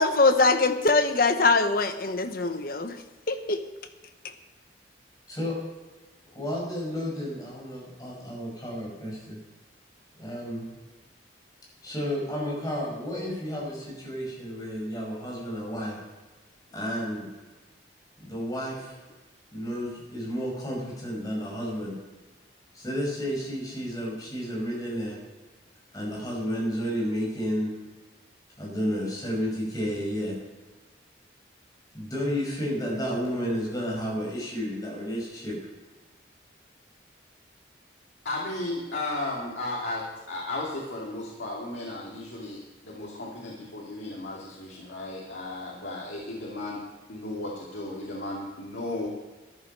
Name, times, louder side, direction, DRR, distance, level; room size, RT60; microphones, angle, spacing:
voice 1, 0.0-3.0 3.3-3.6, left 3 dB, 50° left, 8 dB, 1.0 m, -22 dB
voice 2, 5.3-5.6 6.3-9.4 10.2-10.7 11.8-16.0 16.7-17.3 18.2-19.0 19.5-22.0 22.7-25.2 25.9-27.7 28.6-30.4 31.9-35.6, equal, 20° left, -3 dB, 5.5 m, -31 dB
voice 3, 38.2-46.8 47.1-49.1, left 2 dB, 80° left, -4 dB, 2.7 m, -34 dB
14.0 x 11.0 x 5.4 m, 1.2 s
head